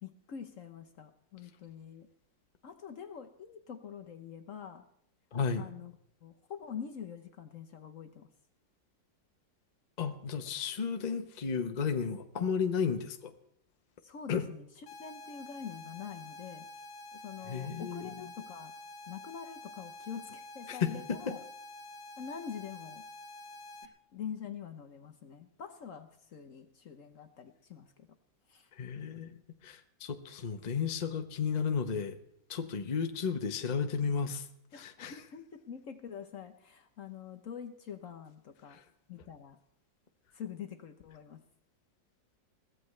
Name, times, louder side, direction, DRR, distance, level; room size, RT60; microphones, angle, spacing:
voice 1, 0.0-2.1 2.6-4.8 5.6-5.9 6.2-8.3 14.0-16.7 17.1-18.7 19.1-21.4 22.2-23.1 23.8-28.1 28.5-28.7 34.7-38.8 39.1-39.6 40.3-41.4, left 7 dB, 55° left, 6 dB, 1.0 m, -45 dB
voice 2, 5.3-5.6 10.0-13.3 14.3-14.5 17.5-18.1 20.7-20.9 21.3-21.4 28.7-32.2 32.5-34.5 34.7-35.1 38.7-38.8, left 6 dB, 40° left, 6 dB, 0.6 m, -33 dB
sound 1, 14.9-23.9, left 2 dB, 90° left, 1.7 m, -48 dB
21.5 x 15.5 x 3.2 m, 0.73 s
omnidirectional pair, 2.0 m